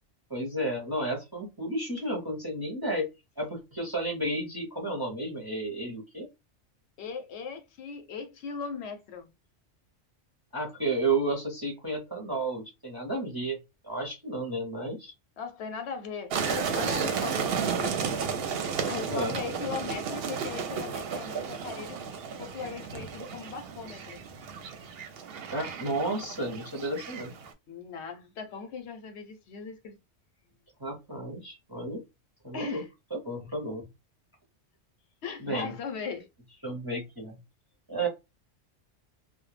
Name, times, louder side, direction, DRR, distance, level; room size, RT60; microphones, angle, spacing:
voice 1, 0.3-3.1 3.4-6.3 10.5-13.6 13.8-15.1 19.0-19.4 25.5-27.3 30.8-32.0 32.4-32.8 33.1-33.9 35.4-35.7 36.6-37.4 37.9-38.1, right 2 dB, 25° right, 0.5 m, -32 dB
voice 2, 7.0-9.3 15.4-18.1 18.9-22.0 22.4-24.2 27.7-30.0 32.5-32.9 35.2-36.3, left 5 dB, 70° left, 0.8 m, -38 dB
sound 1, 16.3-27.5, right 6 dB, 65° right, 0.7 m, -33 dB
2.2 x 2.1 x 3.1 m
omnidirectional pair, 1.2 m